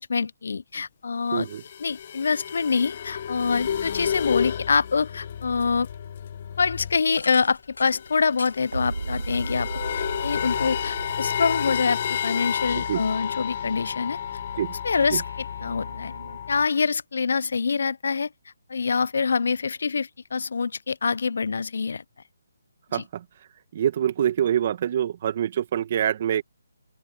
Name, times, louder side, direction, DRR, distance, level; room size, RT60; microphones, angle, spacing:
voice 1, 0.0-1.5 1.8-5.9 6.6-9.7 9.9-14.2 14.8-15.2 15.6-16.1 16.5-18.3 18.7-22.0 22.9-23.0, left 5 dB, 65° left, 0.5 m, -25 dB
voice 2, 1.3-1.6 12.7-13.0 14.6-14.7 15.1-15.2 22.9-23.2 23.7-26.4, right 10 dB, 40° right, 1.5 m, -25 dB
sound 1, 1.4-7.2 7.4-7.5 7.7-16.7, left 9 dB, 45° left, 1.2 m, -31 dB
sound 2, 7.1-11.1 11.5-12.6, left 3 dB, 80° left, 4.1 m, -45 dB
sound 3, 8.7-16.4, right 3 dB, 85° right, 1.3 m, -37 dB
open air
figure-of-eight pair, 155°, 0 cm